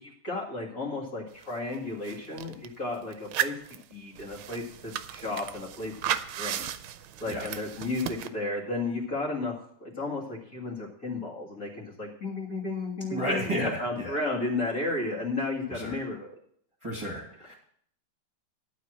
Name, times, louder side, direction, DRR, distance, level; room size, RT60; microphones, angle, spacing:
voice 1, 0.0-3.6 3.9-5.9 6.3-6.6 7.2-9.5 9.8-16.3, left 2 dB, 40° left, -4 dB, 2.4 m, -33 dB
sound 1, 1.4-1.5 1.7-2.7 3.1-8.3, right 11 dB, 85° right, 1.5 m, -35 dB
voice 2, 13.1-14.2 15.7-16.0 16.8-17.5, equal, 15° right, -5 dB, 2.4 m, -32 dB
11.5 x 4.9 x 7.6 m, 0.65 s
omnidirectional pair, 2.3 m